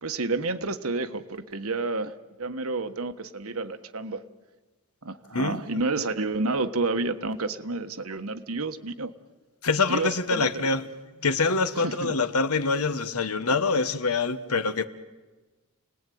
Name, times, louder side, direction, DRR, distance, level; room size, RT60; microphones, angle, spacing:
voice 1, 0.0-4.2 5.0-9.1 9.9-10.6 11.8-12.2, right 3 dB, 70° right, 1.4 m, -30 dB
voice 2, 9.6-10.8 11.2-14.9, left 4 dB, 85° left, 1.3 m, -25 dB
30.0 x 19.5 x 9.3 m
head